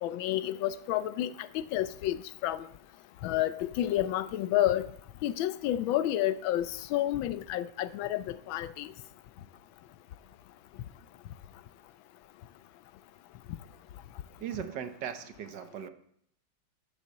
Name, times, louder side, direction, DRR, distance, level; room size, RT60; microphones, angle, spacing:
voice 1, 0.0-2.7 3.2-4.9 5.2-8.9, left 13 dB, 85° left, 15 dB, 1.4 m, -30 dB
voice 2, 14.4-15.9, right 9 dB, 65° right, 9 dB, 1.5 m, -38 dB
11.0 x 7.2 x 6.7 m, 0.67 s
omnidirectional pair, 2.1 m